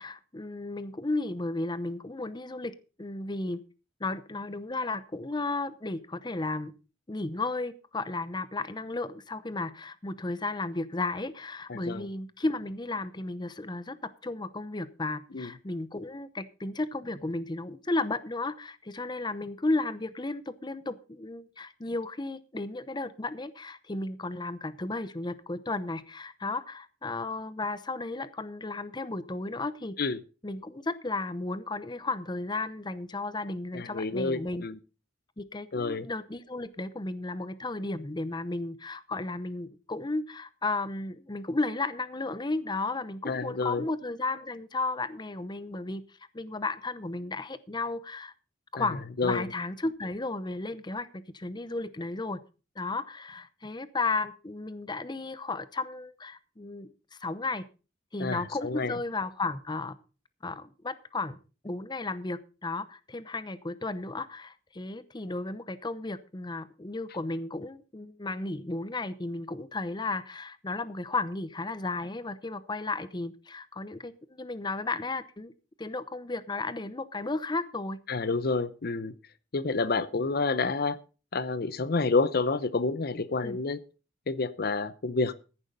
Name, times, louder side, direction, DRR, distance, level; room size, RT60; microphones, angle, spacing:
voice 1, 0.0-3.6 4.0-6.7 7.1-30.0 30.4-34.6 35.4-46.0 46.3-48.3 48.7-52.4 52.8-56.9 57.2-57.6 58.1-60.0 60.4-61.4 61.6-75.5 75.8-78.0 83.4-83.6, left 2 dB, 25° left, 14 dB, 0.8 m, -34 dB
voice 2, 11.7-12.1 15.3-15.5 30.0-30.2 33.7-34.8 35.7-36.1 43.2-43.9 48.8-48.9 49.2-49.5 58.2-58.9 78.1-79.1 79.5-81.0 81.3-83.8 84.3-85.3, left 3 dB, 55° left, 16 dB, 0.7 m, -29 dB
14.5 x 10.5 x 3.9 m, 0.34 s
head